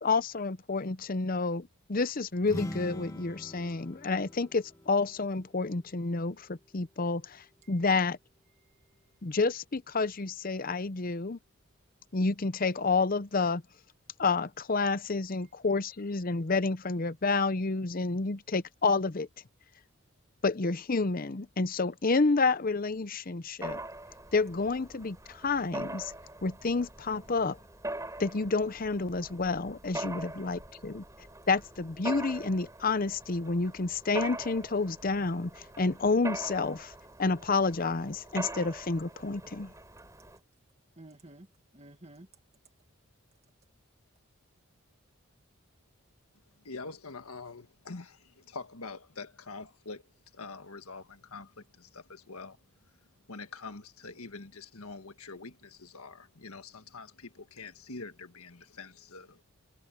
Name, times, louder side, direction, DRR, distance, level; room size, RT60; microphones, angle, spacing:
voice 1, 0.0-8.2 9.2-11.4 12.1-13.6 14.2-19.3 20.4-23.8 24.3-26.1 26.4-27.6 28.2-31.0 31.5-36.9 37.2-39.7, left 3 dB, 40° left, 0.7 m, -29 dB
sound 1, 2.4-6.1, left 1 dB, 15° left, 1.5 m, -42 dB
voice 2, 8.5-9.0 15.3-15.5 30.0-30.6 41.0-41.5 41.7-42.3, right 1 dB, 30° right, 2.0 m, -53 dB
Mechanisms, 23.6-40.4, right 2 dB, 15° right, 4.6 m, -42 dB
voice 3, 46.6-50.0 50.3-52.6 53.3-59.4, left 3 dB, 80° left, 1.7 m, -45 dB
head